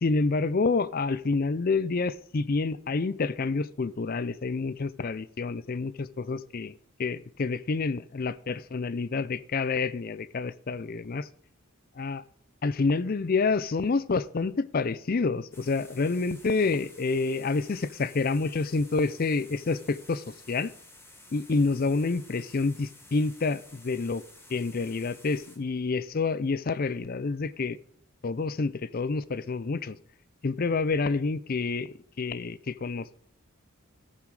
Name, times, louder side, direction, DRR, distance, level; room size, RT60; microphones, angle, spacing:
voice 1, 0.0-6.7 7.0-11.2 12.0-12.2 12.6-20.7 21.3-24.2 24.5-27.8 28.2-30.0 30.4-33.2, left 4 dB, 40° left, 18 dB, 0.4 m, -28 dB
sound 1, 15.5-25.6, left 2 dB, 10° left, 1.7 m, -53 dB
13.5 x 7.3 x 4.8 m, 0.65 s
head